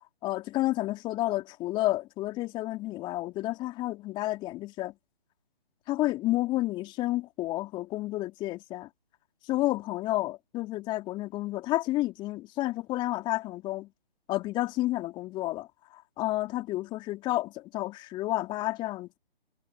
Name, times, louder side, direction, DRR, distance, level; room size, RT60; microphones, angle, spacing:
voice 1, 0.2-4.9 5.9-8.9 9.5-13.9 14.3-15.7 15.9-19.2, left 17 dB, 15° left, 3.1 m, -30 dB
figure-of-eight pair, 145°, 31 cm